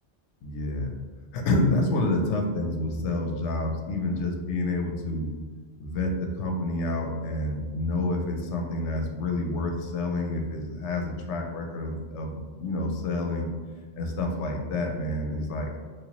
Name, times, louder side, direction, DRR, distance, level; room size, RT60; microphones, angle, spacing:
voice 1, 0.4-1.0 1.3-5.3 5.8-13.5 14.0-15.8, left 2 dB, 85° left, 2 dB, 0.9 m, -28 dB
3.2 x 2.7 x 2.9 m, 1.5 s
omnidirectional pair, 1.2 m